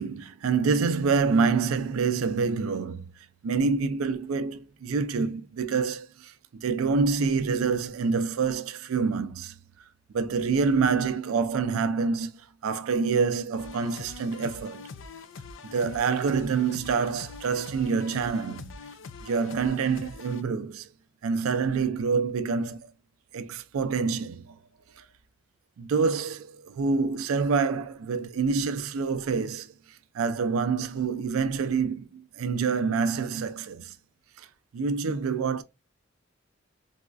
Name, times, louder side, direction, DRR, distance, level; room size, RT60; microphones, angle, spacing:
voice 1, 0.0-3.1 3.4-9.5 10.1-14.9 15.6-18.7 19.2-20.9 21.2-22.9 23.3-24.6 25.0-25.1 25.8-34.0 34.4-34.5 34.7-35.6, right 5 dB, 85° right, 0.4 m, -27 dB
sound 1, 13.6-20.4, left 4 dB, 65° left, 0.4 m, -44 dB
4.0 x 2.3 x 2.4 m
head